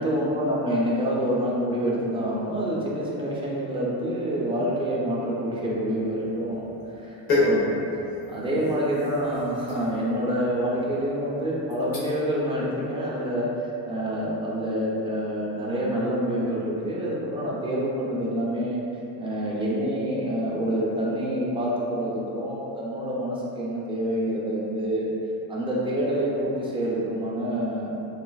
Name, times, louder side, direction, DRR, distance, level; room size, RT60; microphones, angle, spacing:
voice 1, 0.0-6.7 7.0-7.8 8.3-13.5 13.9-18.8 19.2-25.1 25.5-27.9, equal, 10° right, -6 dB, 0.5 m, -27 dB
sound 1, 5.9-12.4 12.8-13.1, left 2 dB, 80° left, 1.2 m, -31 dB
3.9 x 2.4 x 2.3 m, 2.9 s
cardioid pair, 135°, 44 cm